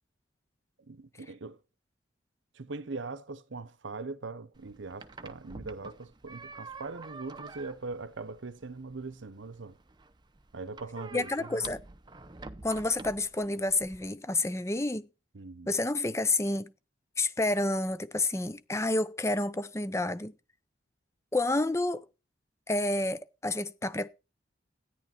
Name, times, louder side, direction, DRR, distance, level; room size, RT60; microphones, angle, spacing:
voice 1, 0.8-1.6 2.5-9.8 10.5-11.7 15.3-15.7, right 3 dB, 80° right, 0.8 m, -41 dB
sound 1, 4.5-14.1, right 3 dB, 25° right, 0.7 m, -48 dB
voice 2, 11.1-11.8 12.6-15.1 15.7-16.7 17.2-20.3 21.3-22.0 22.7-24.1, left 2 dB, 15° left, 0.6 m, -29 dB
13.5 x 10.0 x 4.4 m
head